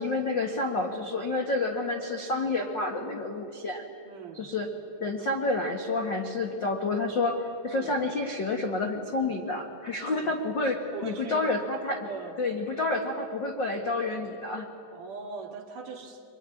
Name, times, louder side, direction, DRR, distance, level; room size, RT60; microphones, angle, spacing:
voice 1, 0.0-3.8 4.3-4.7 5.0-12.1 12.4-14.7, left 2 dB, 75° left, 3 dB, 1.0 m, -29 dB
voice 2, 4.0-4.5 7.6-8.0 10.0-10.4 10.9-11.5 12.0-12.4 14.9-16.2, right 5 dB, 55° right, 1 dB, 3.3 m, -40 dB
24.5 x 23.5 x 9.8 m, 2.6 s
omnidirectional pair, 4.9 m